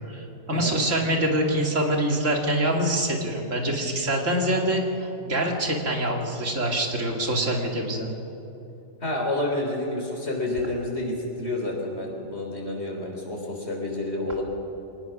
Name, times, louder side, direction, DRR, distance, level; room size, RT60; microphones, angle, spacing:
voice 1, 0.1-4.8 5.3-8.1, right 1 dB, 70° right, 1 dB, 2.7 m, -25 dB
voice 2, 9.0-14.4, left 2 dB, 55° left, 0 dB, 4.1 m, -29 dB
24.0 x 19.5 x 6.1 m, 2.9 s
omnidirectional pair, 1.4 m